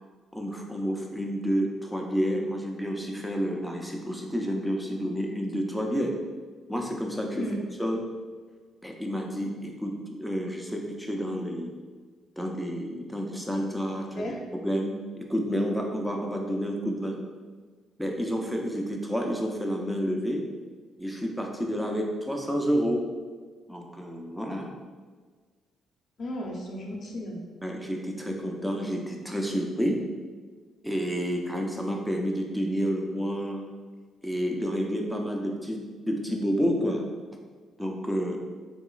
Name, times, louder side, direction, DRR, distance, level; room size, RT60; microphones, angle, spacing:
voice 1, 0.3-6.1 6.7-7.5 7.8-8.0 8.8-11.7 12.4-17.1 18.0-20.5 21.0-23.0 23.7-24.7 27.6-30.0 30.8-33.6 34.2-37.0 37.8-38.4, equal, ahead, 1 dB, 0.5 m, -29 dB
voice 2, 14.0-14.4 26.2-27.4, left 1 dB, 55° left, -1 dB, 0.6 m, -34 dB
3.5 x 2.9 x 2.4 m, 1.5 s
cardioid pair, 90°, 0 cm